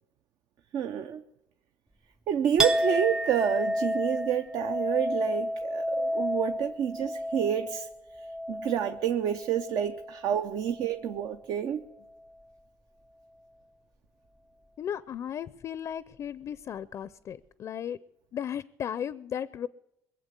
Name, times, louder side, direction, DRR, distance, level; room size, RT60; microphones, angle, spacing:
voice 1, 0.7-1.2 2.3-7.9 8.5-11.8, right 9 dB, 65° right, 8 dB, 0.8 m, -29 dB
Chink clink, 2.6-10.3 10.6-11.3, equal, 5° right, 0.6 m, -31 dB
voice 2, 14.8-18.0 18.3-19.7, left 9 dB, 50° left, 17 dB, 0.5 m, -35 dB
22.0 x 7.7 x 8.2 m, 0.86 s
supercardioid pair, 90°, 7 cm